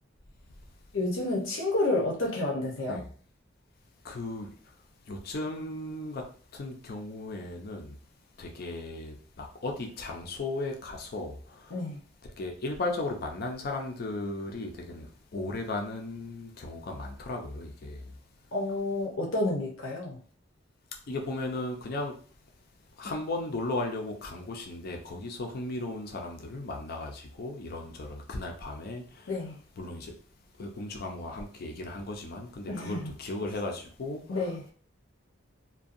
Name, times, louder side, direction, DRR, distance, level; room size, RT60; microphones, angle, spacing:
voice 1, 0.9-3.0 11.7-12.0 18.5-20.2 29.3-29.6 32.7-33.1 34.3-34.6, left 2 dB, 85° left, 0.7 m, -30 dB
voice 2, 4.0-4.5 5.1-6.2 6.5-8.0 8.4-11.7 12.4-15.1 15.3-18.1 21.1-22.1 23.0-29.3 29.8-30.1 30.6-34.7, left 2 dB, 55° left, 0.5 m, -36 dB
2.6 x 2.2 x 2.4 m
head